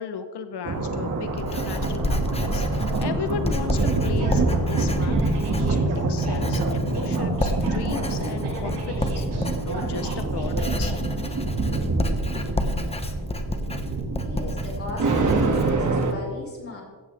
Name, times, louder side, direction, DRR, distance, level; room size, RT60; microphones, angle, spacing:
voice 1, 0.0-10.9, left 7 dB, 75° left, 9 dB, 0.9 m, -36 dB
Writing, 0.7-16.1, left 1 dB, 15° left, 1.1 m, -30 dB
sound 1, 0.7-16.1, right 3 dB, 45° right, 2.1 m, -26 dB
sound 2, 4.2-10.9, right 3 dB, 75° right, 5.4 m, -36 dB
voice 2, 14.2-16.8, left 1 dB, 35° left, -2 dB, 4.8 m, -37 dB
16.0 x 15.0 x 3.4 m, 1.4 s
wide cardioid pair, 155°, 41 cm